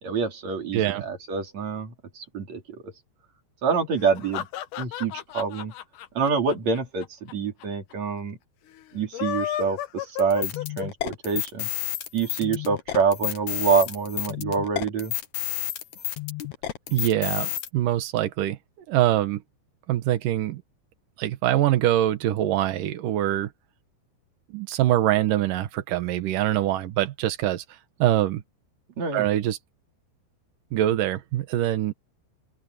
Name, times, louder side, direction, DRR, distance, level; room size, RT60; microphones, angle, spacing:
voice 1, 0.0-2.9 3.6-4.5 4.8-5.7 6.1-8.4 8.9-11.7 12.1-15.1 29.0-29.3, right 5 dB, 40° right, 4.2 m, -26 dB
voice 2, 0.7-1.0 16.9-18.6 18.9-19.4 19.9-20.6 21.2-23.5 24.5-27.6 28.0-28.4 29.1-29.6 30.7-31.9, right 13 dB, 80° right, 2.0 m, -24 dB
sound 1, 4.0-7.3 7.6-7.7 7.9-8.0 9.0-11.1, left 12 dB, 90° left, 1.8 m, -33 dB
sound 2, 10.2-17.7, left 14 dB, 75° left, 1.7 m, -31 dB
open air
omnidirectional pair, 5.5 m